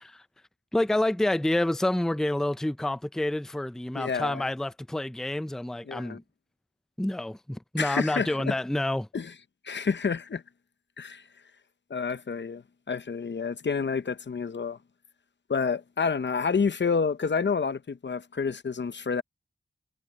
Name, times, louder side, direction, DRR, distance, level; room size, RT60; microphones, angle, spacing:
voice 1, 0.7-6.2 7.0-9.1, left 1 dB, 5° left, 0.5 m, -28 dB
voice 2, 4.0-4.4 5.9-6.2 7.8-8.5 9.1-9.3 9.6-10.4 11.0-11.2 11.9-12.6 12.9-14.8 15.5-19.2, left 5 dB, 70° left, 0.7 m, -29 dB
wide cardioid pair, 75°, 19 cm